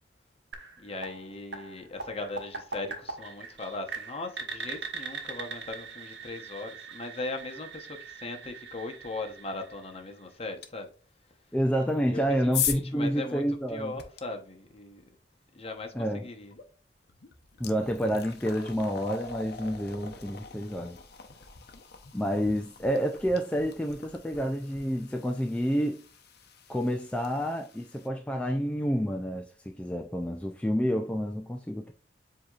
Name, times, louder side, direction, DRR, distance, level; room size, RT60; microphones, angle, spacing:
sound 1, 0.5-10.3, right 4 dB, 80° right, 1.0 m, -42 dB
voice 1, 0.8-10.9 12.1-13.4 13.7-15.0 15.5-16.5, left 2 dB, 35° left, 0.9 m, -39 dB
sound 2, 10.6-10.7 11.8-14.2 16.5-16.7 17.1-28.1, left 8 dB, 60° left, 0.7 m, -40 dB
voice 2, 11.5-13.9 15.9-16.3 17.6-21.0 22.1-26.0 26.7-31.9, equal, 5° left, 0.3 m, -29 dB
7.6 x 2.8 x 2.4 m
head